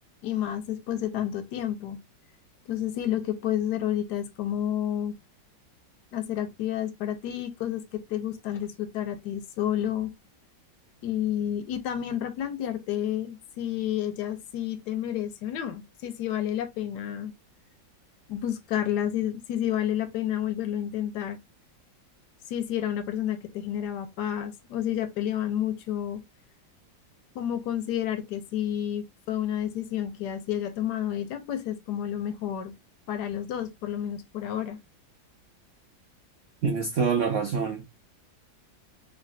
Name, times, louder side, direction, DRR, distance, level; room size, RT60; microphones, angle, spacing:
voice 1, 0.2-2.0 2.7-5.1 6.1-10.1 11.0-17.3 18.3-21.4 22.5-26.2 27.3-32.7 33.1-34.8, left 11 dB, 75° left, 1.1 m, -30 dB
voice 2, 36.6-37.9, right 5 dB, 90° right, 0.6 m, -26 dB
3.1 x 2.6 x 2.5 m
omnidirectional pair, 2.0 m